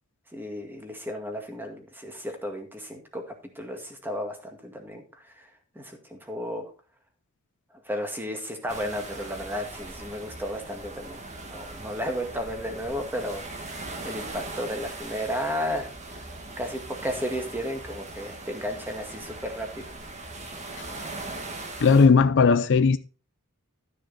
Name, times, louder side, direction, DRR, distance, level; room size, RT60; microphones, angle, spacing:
voice 1, 0.3-3.2 3.6-5.0 5.8-6.6 7.9-11.2 11.5-13.8 14.0-16.3 16.6-19.8, equal, 10° right, 1.9 m, -33 dB
sound 1, 8.7-22.1, right 2 dB, 30° right, 1.8 m, -40 dB
voice 2, 21.8-23.0, left 5 dB, 55° left, 0.5 m, -17 dB
12.5 x 6.4 x 4.1 m
head